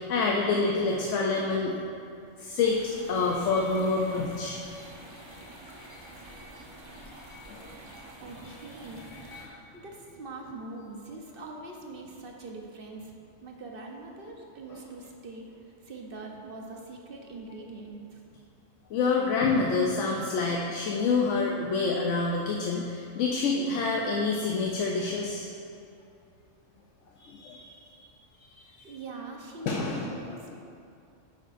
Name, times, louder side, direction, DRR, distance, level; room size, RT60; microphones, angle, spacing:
voice 1, 0.0-1.8 2.4-4.8 7.5-7.8 14.7-14.8 18.9-25.5 27.2-27.7 28.5-28.9 29.7-30.2, left 4 dB, 75° left, -1 dB, 1.0 m, -27 dB
voice 2, 0.9-1.4 6.6-6.8 8.2-13.1 13.4-15.5 15.8-18.2 28.8-30.6, right 3 dB, 50° right, 1 dB, 0.9 m, -43 dB
sound 1, 2.6-9.5, equal, 25° right, 1.0 m, -47 dB
9.6 x 8.2 x 2.5 m, 2.6 s
omnidirectional pair, 1.3 m